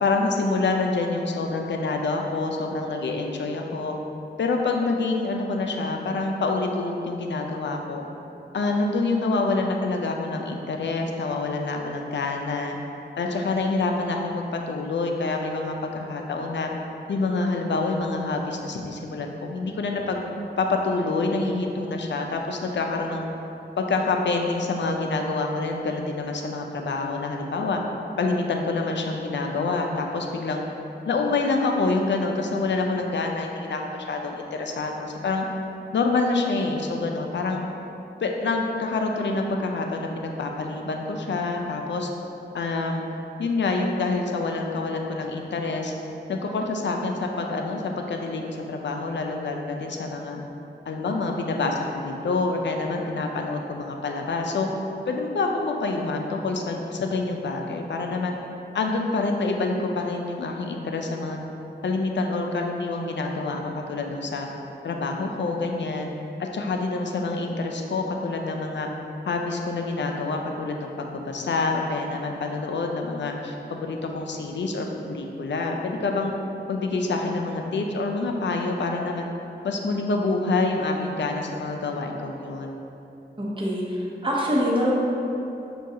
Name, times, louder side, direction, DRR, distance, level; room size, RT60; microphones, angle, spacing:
voice 1, 0.0-4.0 4.4-8.0 8.5-12.8 13.2-16.7 17.1-20.2 20.6-23.3 23.8-27.8 28.2-30.6 31.1-35.5 35.9-37.6 38.2-42.1 42.5-43.0 43.4-45.9 46.3-50.4 50.9-54.7 55.1-58.4 58.7-61.4 61.8-64.5 64.8-66.1 66.4-68.9 69.2-76.3 76.7-79.3 79.6-82.8, left 3 dB, 75° left, 2 dB, 0.4 m, -27 dB
voice 2, 83.4-84.9, equal, 30° right, -6 dB, 0.8 m, -24 dB
6.1 x 2.3 x 2.7 m, 2.9 s
wide cardioid pair, 80°, 19 cm